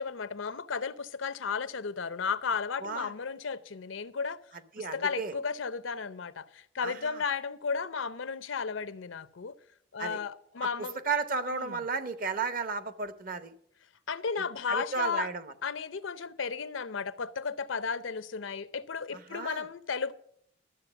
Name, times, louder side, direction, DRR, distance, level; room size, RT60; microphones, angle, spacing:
voice 1, 0.0-4.4 4.8-9.5 9.9-11.0 11.5-11.8 14.1-15.3 15.6-20.1, left 5 dB, 90° left, 0.7 m, -34 dB
voice 2, 4.8-5.3 6.8-7.2 10.0-10.2 10.6-10.7 11.0-13.5 14.7-15.5 19.1-19.7, right 4 dB, 45° right, 0.8 m, -33 dB
12.5 x 7.7 x 6.9 m
head